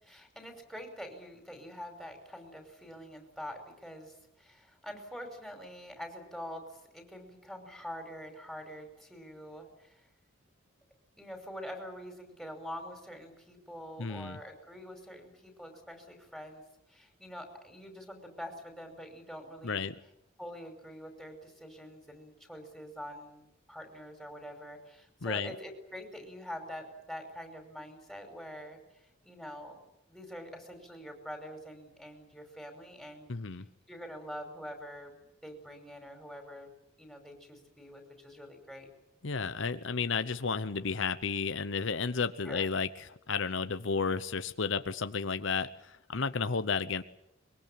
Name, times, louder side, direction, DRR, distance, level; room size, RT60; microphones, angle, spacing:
voice 1, 0.0-10.1 11.2-16.6 16.9-19.9 20.4-28.8 29.2-29.8 30.1-33.3 33.9-36.7 37.0-38.9 42.5-42.7, equal, ahead, 4 dB, 5.4 m, -45 dB
voice 2, 14.0-14.4 19.6-20.0 25.2-25.5 33.3-33.7 39.2-47.0, left 5 dB, 65° left, 11 dB, 0.9 m, -32 dB
24.0 x 22.5 x 8.8 m, 0.81 s
head